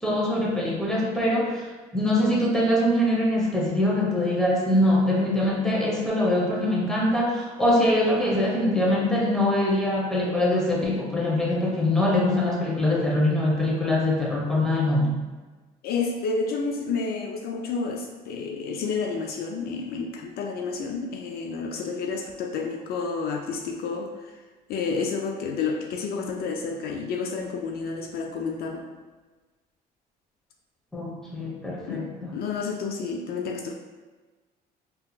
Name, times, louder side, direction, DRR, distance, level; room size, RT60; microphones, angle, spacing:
voice 1, 0.0-1.7 1.9-15.2 30.9-32.4, left 1 dB, 5° left, -5 dB, 0.9 m, -23 dB
voice 2, 15.8-24.3 24.7-28.9 31.9-32.1 32.3-33.7, left 4 dB, 65° left, 2 dB, 0.4 m, -30 dB
3.7 x 2.8 x 2.2 m, 1.3 s
cardioid pair, 110°, 17 cm